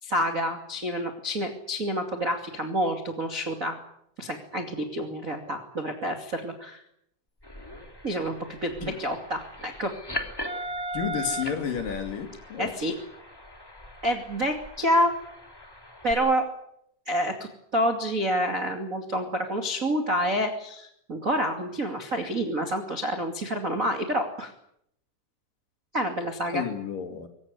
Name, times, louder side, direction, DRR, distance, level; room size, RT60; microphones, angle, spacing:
voice 1, 0.0-3.8 4.2-6.8 8.0-8.3 8.6-9.9 12.6-12.9 14.0-15.1 16.0-16.4 17.0-24.5 25.9-26.6, equal, 30° right, 3 dB, 1.6 m, -28 dB
sound 1, 7.4-16.1, equal, 10° left, 1.6 m, -39 dB
voice 2, 10.9-12.7 26.5-27.3, left 7 dB, 50° left, 6 dB, 3.7 m, -31 dB
24.0 x 18.0 x 9.8 m, 0.75 s
omnidirectional pair, 5.5 m